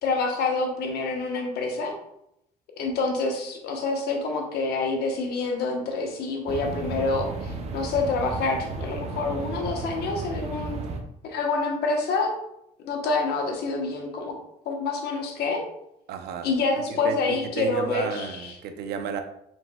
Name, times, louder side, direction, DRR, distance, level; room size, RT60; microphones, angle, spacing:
voice 1, 0.0-1.9 2.8-10.8 11.2-12.3 12.8-14.3 14.6-15.6 16.4-18.6, left 3 dB, 75° left, 1 dB, 1.0 m, -27 dB
sound 1, 6.5-11.0, right 3 dB, 40° right, 0.7 m, -34 dB
voice 2, 16.1-16.5 16.9-19.2, right 7 dB, 75° right, 7 dB, 0.6 m, -33 dB
4.4 x 4.1 x 2.3 m, 0.79 s
cardioid pair, 110°, 17 cm